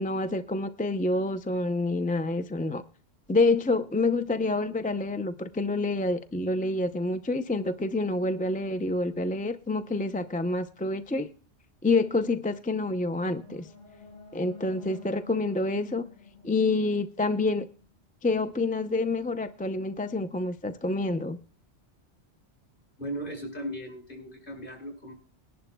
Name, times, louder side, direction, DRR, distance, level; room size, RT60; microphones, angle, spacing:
voice 1, 0.0-2.8 3.3-11.3 11.8-13.7 14.3-16.0 16.4-17.7 18.2-21.4, left 2 dB, 10° left, 9 dB, 0.4 m, -27 dB
sound 1, 12.6-17.7, left 5 dB, 80° left, 4.5 m, -48 dB
voice 2, 23.0-25.1, right 1 dB, 45° left, 3 dB, 5.5 m, -37 dB
21.0 x 11.0 x 2.2 m, 0.39 s
omnidirectional pair, 1.2 m